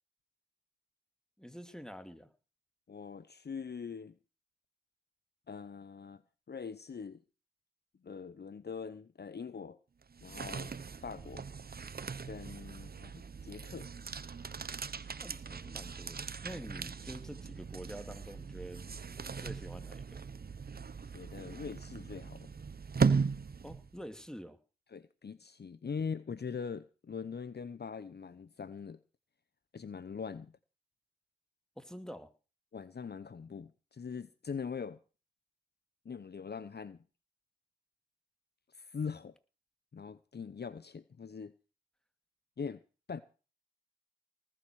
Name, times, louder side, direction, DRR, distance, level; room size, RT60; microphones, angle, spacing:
voice 1, 1.4-2.3 15.2-18.9 19.3-20.2 23.6-24.6 31.8-32.3, equal, 5° left, 2.4 m, -47 dB
voice 2, 2.9-4.1 5.5-6.2 6.5-7.2 8.0-9.8 10.2-10.8 11.0-11.5 12.3-13.9 21.1-22.5 24.9-29.0 29.7-30.5 32.7-35.0 36.0-37.0 38.8-39.3 39.9-41.5 42.6-42.8 43.1-43.2, left 6 dB, 55° left, 0.8 m, -42 dB
sound 1, 10.0-24.1, right 5 dB, 50° right, 0.8 m, -38 dB
19.0 x 7.7 x 6.3 m
cardioid pair, 50°, 20 cm